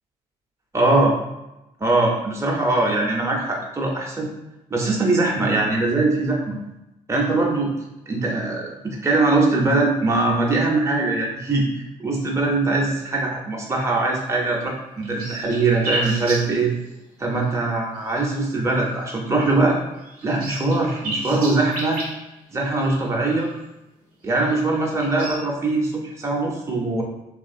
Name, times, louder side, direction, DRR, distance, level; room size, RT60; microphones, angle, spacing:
voice 1, 0.7-1.1 1.8-4.3 4.7-6.6 7.1-7.7 8.1-11.7 12.0-16.7 17.2-19.8 20.2-22.0 22.5-23.5 24.2-27.0, right 2 dB, 15° right, -2 dB, 0.7 m, -21 dB
sound 1, 14.5-14.6 14.8-17.0 17.4-17.5 17.9-18.5 18.8-19.1 19.4-19.5 20.0-23.6 24.3-25.3, right 1 dB, 80° right, 0.7 m, -33 dB
3.1 x 2.4 x 2.5 m, 0.93 s
figure-of-eight pair, 40°, 19 cm